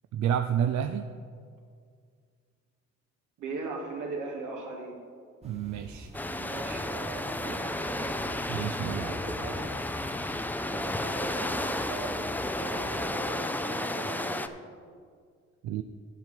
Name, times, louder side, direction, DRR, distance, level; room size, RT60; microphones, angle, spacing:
voice 1, 0.1-1.1 5.4-6.1 8.5-9.1 15.6-15.8, right 9 dB, 70° right, 7 dB, 0.5 m, -29 dB
voice 2, 3.4-5.0 6.3-8.3 8.8-9.8 10.6-14.5, right 3 dB, 85° right, -1 dB, 2.1 m, -39 dB
sound 1, 5.4-13.2, right 1 dB, 20° right, 1.4 m, -47 dB
sound 2, 6.1-14.5, left 1 dB, 5° left, 0.4 m, -32 dB
11.0 x 4.6 x 7.6 m, 2.1 s
cardioid pair, 90°, 30 cm